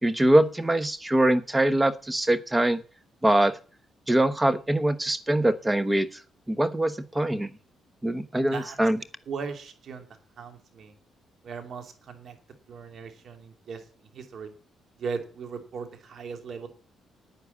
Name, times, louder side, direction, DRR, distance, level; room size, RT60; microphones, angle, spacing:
voice 1, 0.0-2.8 3.2-3.6 4.1-6.2 6.5-7.5 8.0-9.0, right 1 dB, 15° right, 13 dB, 1.0 m, -23 dB
voice 2, 8.4-8.8 9.3-10.1 10.4-10.9 11.4-12.4 12.7-14.5 15.0-16.7, right 5 dB, 60° right, 6 dB, 2.8 m, -38 dB
10.0 x 9.4 x 8.5 m, 0.41 s
cardioid pair, 90°, 0 cm